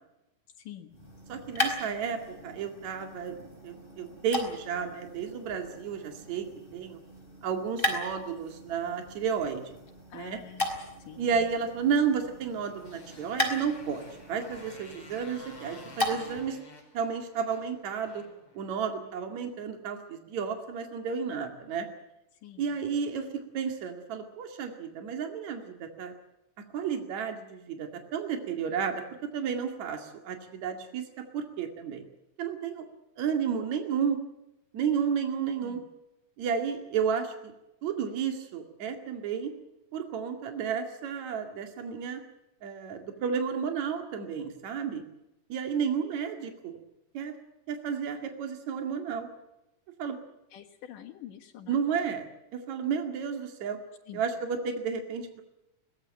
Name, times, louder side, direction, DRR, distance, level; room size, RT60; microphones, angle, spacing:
voice 1, 0.6-0.9 10.1-10.7 11.1-11.3 22.4-22.7 35.6-35.9 50.5-51.8 54.1-54.2, left 11 dB, 85° left, -1 dB, 3.2 m, -46 dB
sound 1, 0.9-16.5, left 1 dB, 15° left, 4.6 m, -37 dB
voice 2, 1.3-3.3 3.6-6.5 6.7-7.0 7.4-9.8 10.1-10.4 11.2-16.6 16.9-18.2 18.6-21.9 22.6-26.1 26.7-29.0 29.3-31.0 31.3-32.1 32.4-32.9 33.2-34.2 34.7-35.8 36.4-37.3 37.8-39.5 39.9-42.2 42.6-45.0 45.5-46.8 47.1-47.3 47.7-49.3 50.0-50.2 51.7-52.3 52.5-53.8 54.1-55.4, right 6 dB, 60° right, 5 dB, 3.5 m, -32 dB
Motorcycle, 12.6-19.1, left 2 dB, 40° left, 5.7 m, -52 dB
22.5 x 19.5 x 7.6 m, 0.90 s
omnidirectional pair, 3.6 m